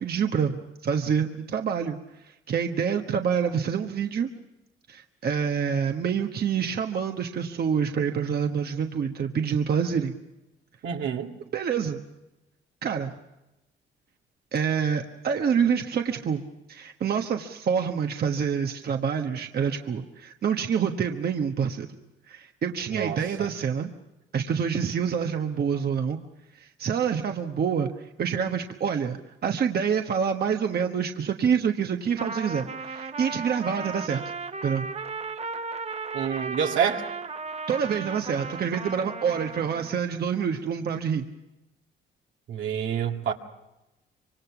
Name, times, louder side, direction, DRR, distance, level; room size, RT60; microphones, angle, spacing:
voice 1, 0.0-2.0 2.2-4.3 4.9-10.1 11.5-12.0 12.8-13.1 14.5-16.4 16.7-21.9 22.3-23.9 24.3-26.2 26.5-34.2 34.6-34.9 37.7-41.2, right 7 dB, 50° right, 1.3 m, -27 dB
voice 2, 10.8-11.3 22.9-23.5 36.1-37.1 42.5-43.3, right 8 dB, 75° right, 2.0 m, -28 dB
Trumpet, 32.1-40.0, right 4 dB, 30° right, 0.9 m, -35 dB
25.0 x 25.0 x 6.0 m
cardioid pair, 90°, 20 cm